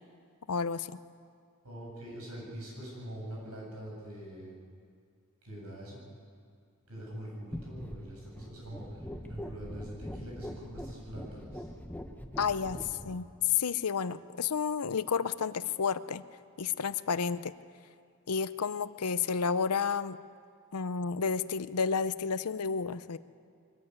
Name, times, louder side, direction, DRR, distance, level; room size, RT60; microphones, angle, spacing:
voice 1, 0.5-1.0 12.4-16.2 16.6-17.5 18.3-20.2 20.7-23.2, left 6 dB, 85° left, 14 dB, 0.7 m, -31 dB
voice 2, 1.6-4.5 5.4-6.0 6.9-11.7 12.8-13.0, right 1 dB, 80° right, -3 dB, 8.0 m, -44 dB
sound 1, 7.5-13.2, equal, 5° left, 0.9 m, -43 dB
23.0 x 14.0 x 9.5 m, 2.2 s
head